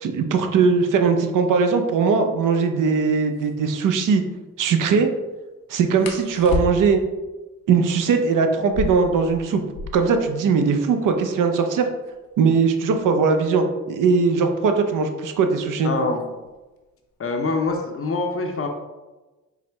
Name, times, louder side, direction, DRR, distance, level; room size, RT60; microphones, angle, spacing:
voice 1, 0.0-4.2 4.6-5.1 5.7-7.0 7.7-9.6 9.9-11.9 12.4-15.9, right 5 dB, 60° right, 6 dB, 0.6 m, -20 dB
sound 1, 3.3-3.5 6.0-7.1 8.6-10.2 10.5-10.6 10.8-11.4 12.0-14.6 15.6-15.9 16.3-16.8 17.1-17.8, left 3 dB, 80° left, 0.7 m, -32 dB
voice 2, 15.8-16.3 17.2-18.7, left 3 dB, 40° left, 3 dB, 0.6 m, -24 dB
4.6 x 2.1 x 3.3 m, 1.1 s
supercardioid pair, 60°, 35 cm